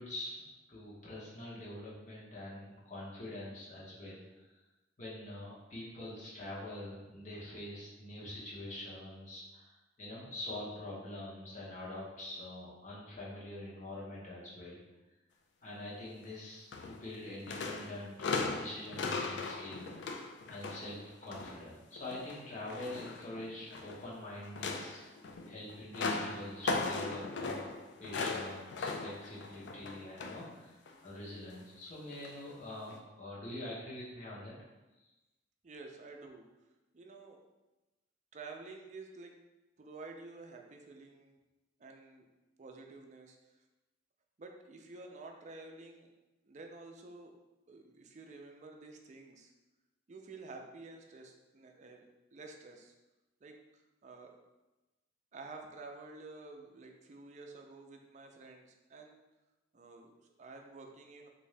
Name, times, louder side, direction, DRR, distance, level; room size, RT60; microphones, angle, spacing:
voice 1, 0.0-4.6 5.0-14.8 15.6-19.9 20.5-25.0 25.5-27.7 28.0-30.8 31.0-34.5, left 1 dB, 40° left, -6 dB, 1.0 m, -45 dB
sound 1, 16.7-17.2 17.5-21.6 22.0-24.1 24.4-30.5 30.9-31.1 32.1-32.3 32.9-33.0, left 3 dB, 70° left, 0.4 m, -38 dB
voice 2, 35.6-36.5 36.9-37.5 38.3-39.4 39.8-41.3 41.8-42.2 42.6-43.6 44.4-46.1 46.5-47.4 47.7-49.5 50.1-52.9 53.4-54.4 55.3-59.2 59.7-61.3, right 3 dB, 40° right, 3 dB, 0.4 m, -50 dB
3.6 x 2.6 x 3.2 m, 1.1 s
head